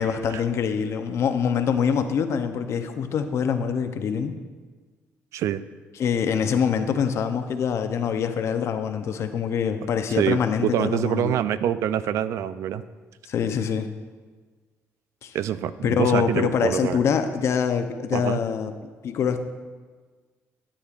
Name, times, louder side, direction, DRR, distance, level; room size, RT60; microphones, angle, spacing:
voice 1, 0.0-4.4 6.0-11.4 13.2-13.9 15.2-15.4 15.8-18.7 19.0-19.4, left 7 dB, 60° left, 8 dB, 0.6 m, -24 dB
voice 2, 10.1-12.8 15.3-17.0 18.1-18.4, right 10 dB, 75° right, 14 dB, 0.3 m, -25 dB
11.5 x 8.7 x 2.4 m, 1.4 s
cardioid pair, 100°, 5 cm